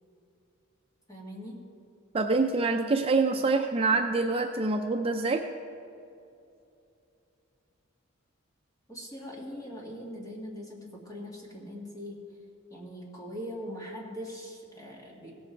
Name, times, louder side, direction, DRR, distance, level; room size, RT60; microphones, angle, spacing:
voice 1, 1.1-1.7 8.9-12.3 12.7-15.3, equal, 15° left, -2 dB, 1.9 m, -41 dB
voice 2, 2.1-5.4, right 3 dB, 30° right, 4 dB, 0.4 m, -26 dB
17.0 x 7.2 x 4.5 m, 2.7 s
head